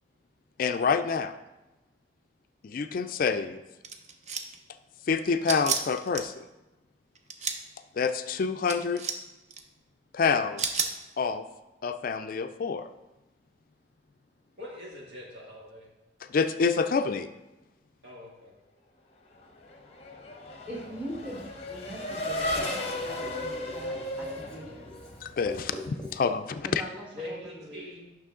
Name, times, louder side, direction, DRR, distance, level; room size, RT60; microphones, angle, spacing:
voice 1, 0.6-1.3 2.6-3.6 5.1-6.3 8.0-9.0 10.1-10.6 11.2-11.4 11.8-12.9 16.3-17.3 25.2-26.7, left 5 dB, 50° left, 9 dB, 0.4 m, -27 dB
sound 1, 3.8-4.6 5.5-6.2 7.2-7.6 8.7-9.2 9.5-9.6 10.6-10.9, right 5 dB, 40° right, 0.6 m, -30 dB
voice 2, 14.6-15.9 18.0-18.5 27.1-28.2, left 1 dB, 75° right, -4 dB, 2.5 m, -42 dB
Race car auto racing / Accelerating revving vroom, 19.4-25.5, left 1 dB, 35° left, 0.9 m, -35 dB
Writing, 20.6-26.2, left 1 dB, 5° left, 1.5 m, -46 dB
voice 3, 20.7-24.8 26.6-27.9, equal, 10° right, -4 dB, 1.5 m, -41 dB
9.0 x 6.0 x 3.7 m, 1.0 s
head